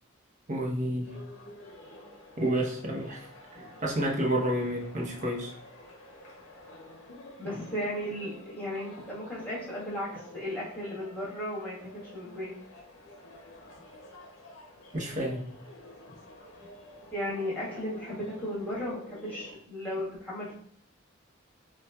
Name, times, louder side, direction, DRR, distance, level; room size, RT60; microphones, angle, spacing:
voice 1, 0.5-1.2 2.4-3.3 3.6-5.5 14.9-15.4, right 1 dB, 40° right, -1 dB, 0.8 m, -30 dB
sound 1, 1.0-19.5, left 1 dB, 90° left, 0.8 m, -50 dB
voice 2, 7.4-12.5 17.1-20.5, left 1 dB, 10° left, -9 dB, 1.3 m, -35 dB
5.5 x 2.3 x 2.3 m, 0.63 s
head